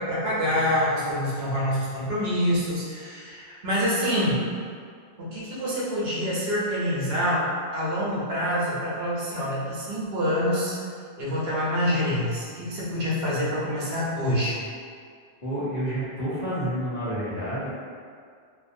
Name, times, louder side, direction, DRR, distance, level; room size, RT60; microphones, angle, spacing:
voice 1, 0.0-4.4 5.2-7.5 7.7-10.8 11.2-14.6, equal, 75° right, -7 dB, 0.9 m, -26 dB
voice 2, 15.4-17.7, right 1 dB, 45° left, -11 dB, 0.8 m, -29 dB
2.5 x 2.2 x 2.6 m, 2.1 s
omnidirectional pair, 1.1 m